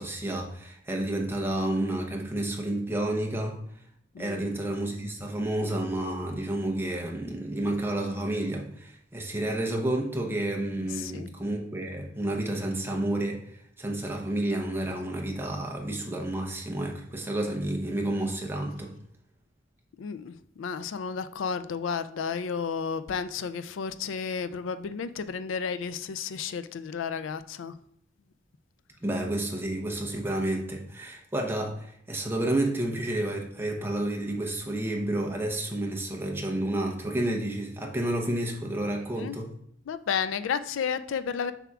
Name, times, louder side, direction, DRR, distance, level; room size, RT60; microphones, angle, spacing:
voice 1, 0.0-3.6 4.2-13.4 13.8-18.9 29.0-39.5, right 1 dB, 10° right, 0 dB, 0.8 m, -30 dB
voice 2, 4.1-4.6 10.9-11.3 20.0-27.7 39.2-39.4 39.9-41.5, left 6 dB, 85° left, 12 dB, 0.4 m, -32 dB
6.9 x 5.7 x 2.4 m, 0.70 s
head